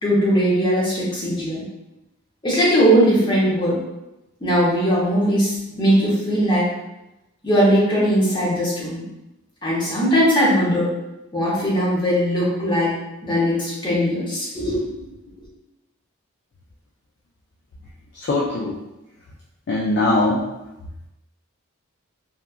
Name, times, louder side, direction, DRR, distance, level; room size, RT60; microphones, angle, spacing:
voice 1, 0.0-1.6 2.4-3.8 4.4-6.6 7.4-9.0 9.6-10.9 11.3-12.9 13.2-14.8, equal, 20° left, -8 dB, 0.8 m, -19 dB
voice 2, 18.1-18.8 19.7-20.4, left 2 dB, 50° left, -3 dB, 0.3 m, -21 dB
2.8 x 2.4 x 2.3 m, 0.95 s
head